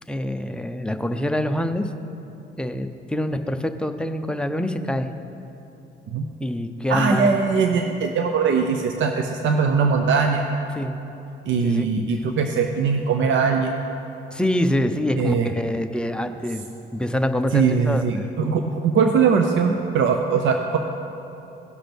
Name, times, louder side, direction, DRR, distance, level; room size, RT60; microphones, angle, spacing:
voice 1, 0.1-1.9 2.6-5.1 6.4-7.3 10.8-10.9 11.6-11.8 14.3-16.6 16.9-18.3, left 1 dB, 5° left, 7 dB, 0.5 m, -25 dB
voice 2, 6.9-10.5 11.5-13.7 15.2-15.5 17.5-20.8, right 5 dB, 70° right, 4 dB, 0.6 m, -21 dB
17.5 x 5.9 x 3.5 m, 3.0 s
cardioid pair, 90°, 20 cm